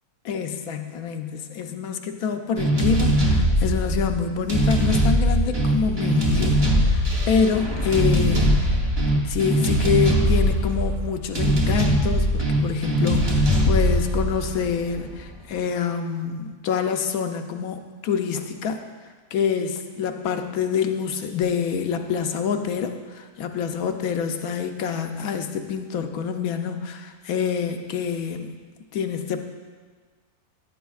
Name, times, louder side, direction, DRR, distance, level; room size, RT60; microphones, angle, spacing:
voice 1, 0.2-8.8 9.2-18.8 19.3-28.5 28.9-29.4, left 6 dB, 75° left, 6 dB, 1.0 m, -26 dB
sound 1, 2.6-15.3, equal, 25° right, 0.6 m, -21 dB
12.5 x 8.3 x 2.4 m, 1.5 s
omnidirectional pair, 1.6 m